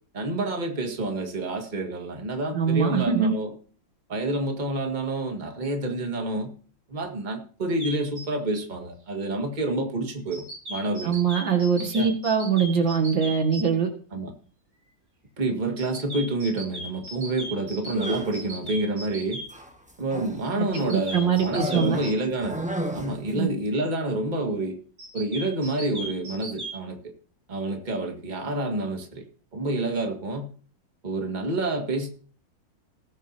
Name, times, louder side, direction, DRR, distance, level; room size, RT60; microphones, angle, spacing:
voice 1, 0.1-3.5 4.1-6.5 6.9-11.2 11.9-12.1 14.1-14.3 15.4-19.4 20.0-22.7 22.9-24.8 25.1-27.1 27.5-29.2 29.5-30.5 31.0-32.1, right 2 dB, 25° right, 3 dB, 1.9 m, -28 dB
voice 2, 2.5-3.3 11.0-13.9 20.6-22.0 23.3-23.5, right 6 dB, 80° right, 4 dB, 2.7 m, -23 dB
sound 1, 7.7-8.3 10.3-13.6 15.8-19.5 20.7-22.1 25.0-26.8, right 1 dB, 50° right, 3.3 m, -37 dB
sound 2, 17.9-18.5 19.5-20.5 21.5-23.3, right 1 dB, 5° right, 1.1 m, -33 dB
19.0 x 9.2 x 2.8 m, 0.41 s
omnidirectional pair, 2.0 m